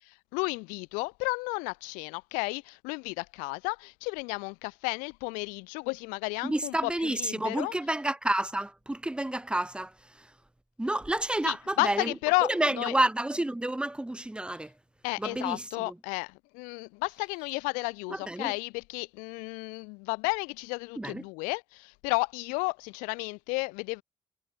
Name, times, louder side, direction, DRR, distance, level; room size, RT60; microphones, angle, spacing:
voice 1, 0.0-7.7 11.4-12.9 15.0-24.0, left 30 dB, 80° left, 0.9 m, -32 dB
voice 2, 6.4-9.9 10.8-12.1 12.5-14.7 15.2-15.9 18.1-18.5 21.0-21.2, right 1 dB, 5° right, 0.6 m, -30 dB
hypercardioid pair, 40°, 14 cm